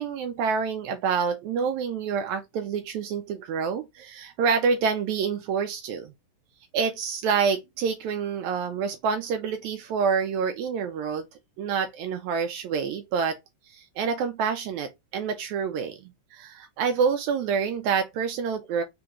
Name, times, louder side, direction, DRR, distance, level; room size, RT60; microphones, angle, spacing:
voice 1, 0.0-6.1 6.7-11.3 11.6-13.4 13.7-16.0 16.3-18.8, right 6 dB, 80° right, 1.9 m, -27 dB
4.3 x 3.7 x 2.9 m
omnidirectional pair, 3.5 m